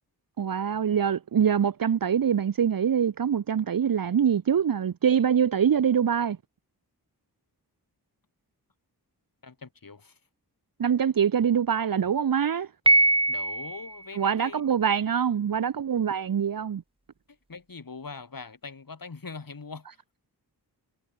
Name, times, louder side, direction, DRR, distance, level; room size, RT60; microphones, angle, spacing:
voice 1, 0.4-6.4 10.8-12.7 14.2-16.8, right 8 dB, 60° right, 0.7 m, -24 dB
voice 2, 9.4-10.2 13.3-14.6 17.5-19.9, left 4 dB, 60° left, 5.3 m, -42 dB
Piano, 12.9-14.0, right 2 dB, 15° right, 1.4 m, -21 dB
wide cardioid pair, 100°, 39 cm